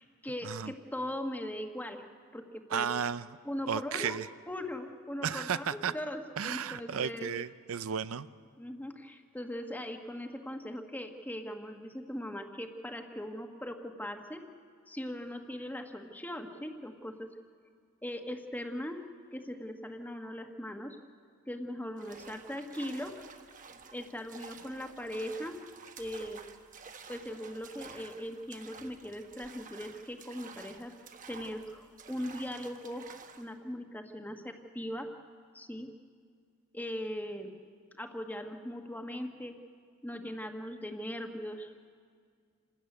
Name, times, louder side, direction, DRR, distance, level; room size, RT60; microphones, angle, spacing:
voice 1, 0.0-2.0 2.3-2.9 3.4-4.2 4.5-7.3 8.6-14.4 14.9-17.4 18.0-21.0 21.5-23.2 23.9-25.6 26.0-26.4 27.1-30.9 31.3-33.1 33.4-35.1 35.5-35.9 36.7-37.5 37.9-39.6 40.0-41.7, left 1 dB, 10° left, 5 dB, 1.3 m, -40 dB
voice 2, 2.7-3.3 3.7-4.3 5.2-5.9 6.4-8.3, right 7 dB, 75° right, 14 dB, 0.6 m, -33 dB
sound 1, 22.0-33.5, right 5 dB, 40° right, 1.2 m, -51 dB
27.0 x 13.5 x 9.4 m, 2.1 s
head